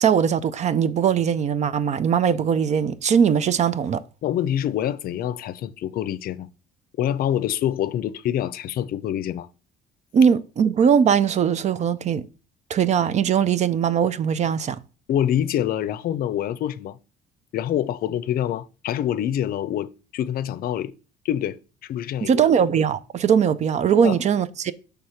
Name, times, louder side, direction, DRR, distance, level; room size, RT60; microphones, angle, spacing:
voice 1, 0.0-4.0 10.1-12.3 12.7-14.8 22.2-24.7, right 7 dB, 45° right, 0.5 m, -20 dB
voice 2, 4.2-6.5 7.0-9.5 15.1-17.0 17.5-20.9 21.2-22.4 24.0-24.2, left 11 dB, 60° left, 0.5 m, -26 dB
6.4 x 3.4 x 5.6 m
cardioid pair, 110°, 17 cm